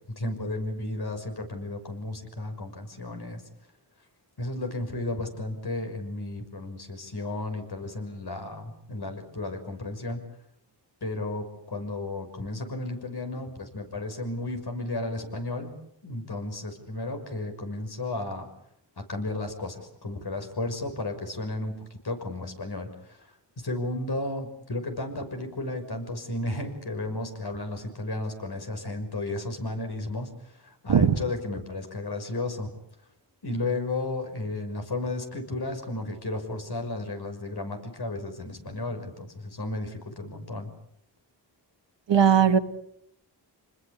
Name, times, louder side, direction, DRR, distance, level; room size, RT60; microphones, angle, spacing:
voice 1, 0.1-3.5 4.4-10.3 11.0-15.7 16.0-18.5 19.0-32.7 33.4-40.7, left 2 dB, 60° left, 5 dB, 6.1 m, -33 dB
voice 2, 42.1-42.6, right 7 dB, 75° right, 9 dB, 1.7 m, -18 dB
29.5 x 20.5 x 8.5 m, 0.73 s
cardioid pair, 70°, 44 cm